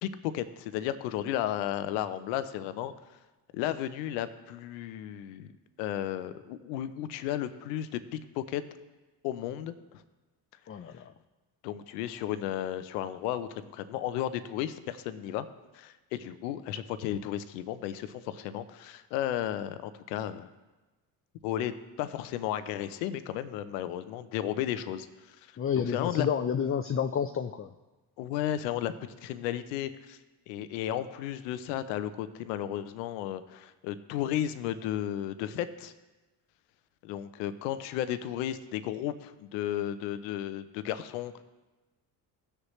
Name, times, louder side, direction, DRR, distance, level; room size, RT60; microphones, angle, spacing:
voice 1, 0.0-2.9 3.5-5.5 5.8-8.6 9.2-9.7 11.6-15.4 15.7-20.5 21.4-25.4 25.9-26.3 28.2-28.9 29.2-30.2 30.5-35.9 37.0-41.4, left 11 dB, 90° left, 12 dB, 0.7 m, -34 dB
voice 2, 10.7-11.0 25.6-27.7, left 7 dB, 30° left, 8 dB, 0.5 m, -30 dB
17.0 x 6.6 x 3.1 m, 1.1 s
supercardioid pair, 60°, 48 cm